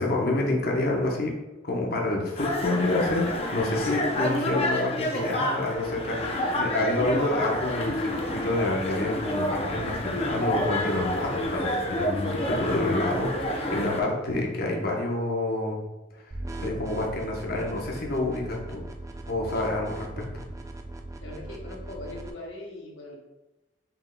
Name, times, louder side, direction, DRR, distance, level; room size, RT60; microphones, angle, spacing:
voice 1, 0.0-1.3 1.6-15.8 16.6-18.9 19.3-20.1 20.3-20.4, left 2 dB, 55° left, -1 dB, 0.9 m, -28 dB
sound 1, 2.4-14.0, left 1 dB, 30° left, 0.6 m, -29 dB
sound 2, 16.3-22.3, right 2 dB, 15° right, 0.3 m, -39 dB
voice 2, 21.2-23.2, left 2 dB, 75° left, -1 dB, 1.1 m, -41 dB
5.8 x 3.6 x 2.2 m, 1.1 s
head